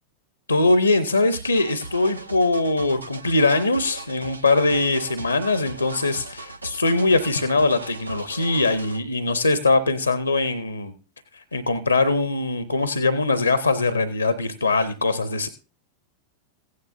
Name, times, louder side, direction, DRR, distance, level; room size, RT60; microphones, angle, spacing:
voice 1, 0.5-10.9 11.3-15.5, left 2 dB, 80° left, 14 dB, 0.6 m, -22 dB
sound 1, 1.3-9.0, right 2 dB, 80° right, 0.6 m, -38 dB
15.5 x 9.5 x 2.6 m, 0.32 s
figure-of-eight pair, 90°, 0 cm